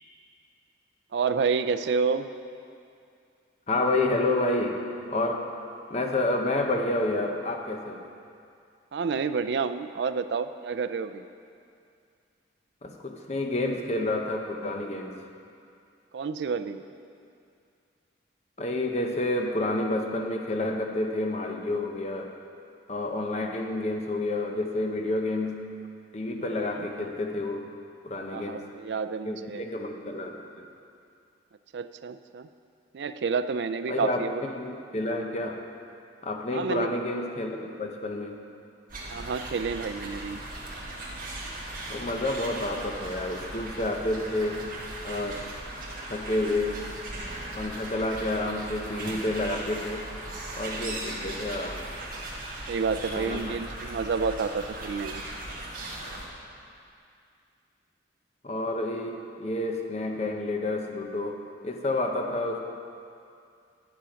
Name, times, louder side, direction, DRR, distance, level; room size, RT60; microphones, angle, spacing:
voice 1, 1.1-2.3 8.9-11.2 16.1-16.8 26.8-26.9 28.3-29.6 31.7-32.5 32.9-34.4 36.5-36.9 39.1-40.4 52.7-55.2, right 5 dB, 65° right, 11 dB, 0.3 m, -29 dB
voice 2, 3.7-4.8 5.1-5.5 5.9-8.0 12.8-15.2 18.6-22.3 22.9-25.7 26.1-27.6 28.0-28.6 29.2-30.6 33.9-35.6 36.2-37.5 37.8-38.4 41.9-44.7 45.0-45.5 46.1-46.8 47.5-50.1 50.5-51.8 53.1-53.5 58.4-62.6, left 2 dB, 35° left, 3 dB, 0.7 m, -29 dB
sound 1, 38.9-56.3, right 1 dB, 50° right, 1.5 m, -38 dB
10.5 x 6.9 x 5.1 m, 2.4 s
head